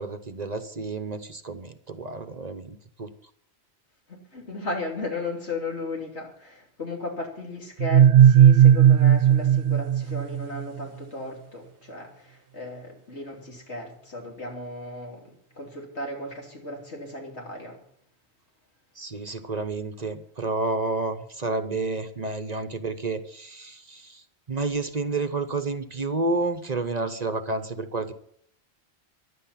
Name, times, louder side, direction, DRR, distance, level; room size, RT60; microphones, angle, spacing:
voice 1, 0.0-3.1 18.9-28.1, right 3 dB, 40° right, 1.0 m, -30 dB
voice 2, 4.1-17.8, left 2 dB, 80° left, 3.4 m, -35 dB
sound 1, 7.8-10.6, right 9 dB, 60° right, 1.0 m, -16 dB
15.0 x 11.5 x 5.7 m
omnidirectional pair, 1.1 m